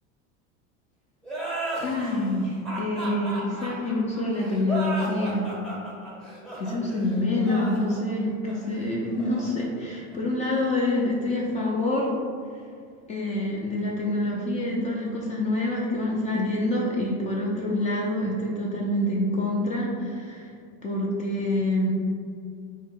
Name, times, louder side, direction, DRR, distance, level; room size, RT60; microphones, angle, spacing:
sound 1, 1.2-10.5, right 2 dB, ahead, 0.7 m, -35 dB
voice 1, 1.8-5.5 6.6-12.1 13.1-20.5 20.8-21.9, left 1 dB, 25° left, -3 dB, 0.4 m, -26 dB
3.6 x 2.1 x 3.7 m, 2.3 s
cardioid pair, 145°, 30 cm